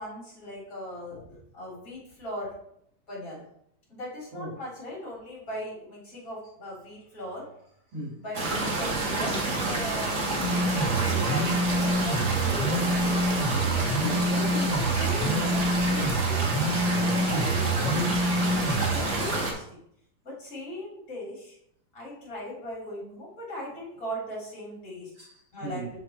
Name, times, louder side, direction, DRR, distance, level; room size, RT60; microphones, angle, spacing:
voice 1, 0.0-2.6 3.1-3.4 3.9-7.5 8.2-13.2 14.3-18.2 18.5-19.8 20.2-21.6 21.9-25.1 25.5-26.0, equal, 35° left, 3.6 m, -39 dB
sound 1, 8.3-19.5, right 2 dB, 40° right, 1.5 m, -29 dB
sound 2, 10.4-19.0, right 1 dB, 20° left, 1.2 m, -27 dB
voice 2, 13.5-14.4 18.9-19.1 25.1-25.9, right 2 dB, 80° right, 3.2 m, -39 dB
5.9 x 5.7 x 4.3 m
omnidirectional pair, 2.4 m